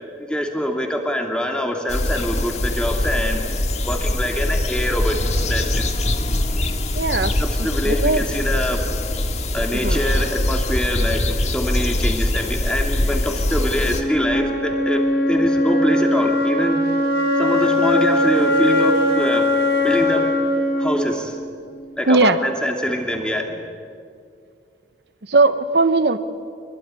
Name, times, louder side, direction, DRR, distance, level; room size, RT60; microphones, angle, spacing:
voice 1, 0.3-3.4 3.9-6.0 7.3-8.8 9.5-16.8 17.4-19.5 19.8-20.3 20.8-21.4 22.0-23.5, equal, 5° left, 2 dB, 2.7 m, -24 dB
sound 1, 1.9-14.0, left 1 dB, 40° left, 1.8 m, -22 dB
voice 2, 6.9-7.3 7.9-8.2 9.8-10.0 22.1-22.4 25.3-26.2, right 3 dB, 70° right, 10 dB, 1.0 m, -17 dB
Wind instrument woodwind instrument, 13.9-21.9, left 1 dB, 70° left, 4.7 m, -20 dB
24.5 x 22.0 x 9.8 m, 2.2 s
head